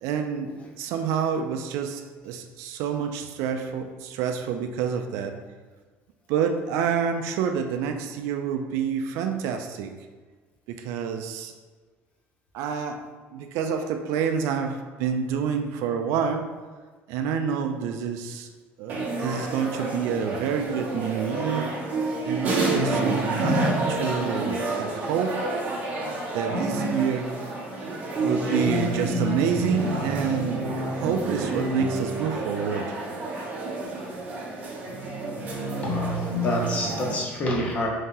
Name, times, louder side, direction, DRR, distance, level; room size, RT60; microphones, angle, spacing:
voice 1, 0.0-5.4 6.3-10.0 10.7-11.5 12.5-16.5 17.1-18.5 18.8-21.7 22.2-23.0 23.4-25.4 26.3-27.4 28.2-30.6 31.0-32.9, right 7 dB, 70° right, 5 dB, 0.3 m, -28 dB
sound 1, 18.9-37.1, right 2 dB, 35° right, 0.8 m, -28 dB
voice 2, 35.8-37.9, left 1 dB, 30° left, -1 dB, 0.7 m, -28 dB
4.1 x 2.7 x 3.7 m, 1.4 s
cardioid pair, 165°, 5 cm